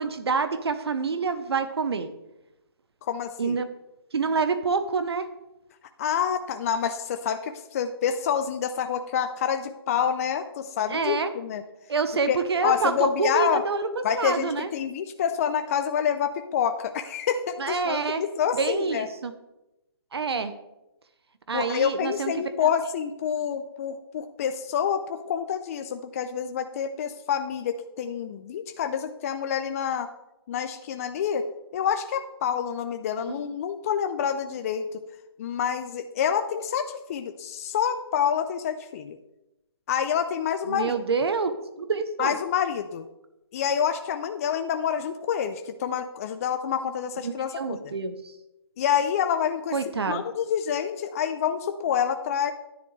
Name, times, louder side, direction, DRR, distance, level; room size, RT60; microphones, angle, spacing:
voice 1, 0.0-2.1 3.4-3.7 4.1-5.3 10.9-11.3 11.9-13.9 14.1-14.7 17.6-18.2 18.6-19.3 20.1-20.5 21.5-22.3 22.6-22.7 33.3-33.4 40.7-41.5 41.8-42.3 47.2-48.3 49.7-50.2, right 4 dB, 75° right, 10 dB, 0.9 m, -27 dB
voice 2, 3.0-3.6 6.0-11.6 12.3-13.6 14.0-19.1 21.5-30.1 30.5-31.4 31.7-35.0 35.4-39.2 39.9-40.9 42.2-43.0 43.5-47.9 48.8-49.8 50.1-52.5, left 8 dB, 35° left, 8 dB, 0.5 m, -27 dB
11.0 x 10.0 x 3.2 m, 0.95 s
hypercardioid pair, 150°, 14 cm